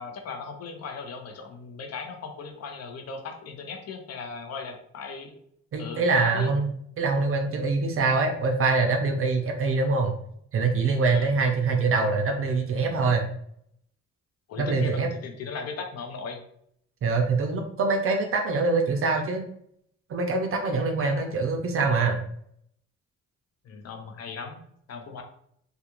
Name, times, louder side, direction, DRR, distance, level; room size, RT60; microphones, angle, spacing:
voice 1, 0.0-5.3 5.8-6.5 11.1-11.3 14.5-16.4 21.0-21.2 23.6-24.6 24.9-25.2, left 5 dB, 55° left, 4 dB, 0.6 m, -37 dB
voice 2, 5.7-10.1 10.5-13.2 14.6-15.1 17.0-19.4 20.1-22.2, right 4 dB, 45° right, 3 dB, 0.5 m, -24 dB
2.4 x 2.3 x 2.9 m, 0.67 s
cardioid pair, 90°, 30 cm